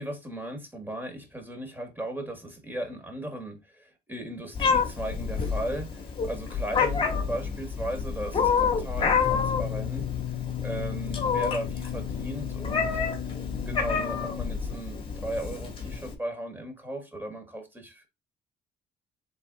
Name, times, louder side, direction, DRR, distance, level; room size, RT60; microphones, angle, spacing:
voice 1, 0.0-10.1 10.6-13.0 13.6-18.1, right 1 dB, 10° right, 1.3 m, -36 dB
Meow, 4.6-16.1, left 6 dB, 30° left, 1.1 m, -29 dB
sound 1, 9.2-14.5, left 12 dB, 55° left, 0.7 m, -35 dB
3.6 x 3.4 x 3.8 m
cardioid pair, 110°, 17 cm